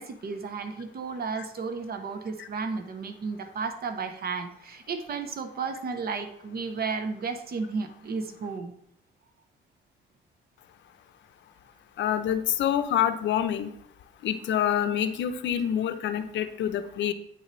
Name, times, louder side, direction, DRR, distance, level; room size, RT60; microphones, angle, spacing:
voice 1, 0.0-8.7, right 4 dB, 50° right, 8 dB, 0.8 m, -33 dB
voice 2, 12.0-13.7 14.2-17.1, left 9 dB, 65° left, 10 dB, 0.6 m, -27 dB
8.8 x 4.0 x 3.1 m, 0.71 s
cardioid pair, 90°, 20 cm